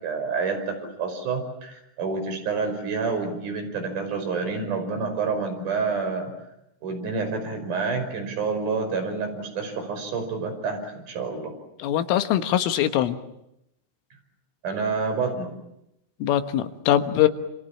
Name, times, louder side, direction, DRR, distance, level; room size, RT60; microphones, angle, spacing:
voice 1, 0.0-6.3 6.8-11.5 14.6-15.5, right 4 dB, 40° right, 5 dB, 6.5 m, -28 dB
voice 2, 11.8-13.2 16.2-17.3, left 11 dB, 85° left, 8 dB, 3.9 m, -22 dB
28.0 x 27.0 x 7.4 m, 0.83 s
omnidirectional pair, 5.7 m